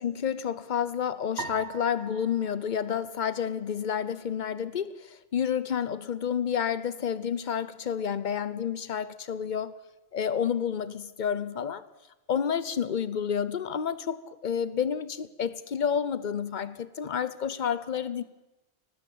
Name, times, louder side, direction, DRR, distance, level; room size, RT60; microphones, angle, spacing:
voice 1, 0.0-9.7 10.1-11.8 12.3-18.2, left 8 dB, 50° left, 1.0 m, -30 dB
sound 1, 1.4-3.9, right 4 dB, 80° right, 1.8 m, -42 dB
19.5 x 16.0 x 8.6 m
omnidirectional pair, 1.1 m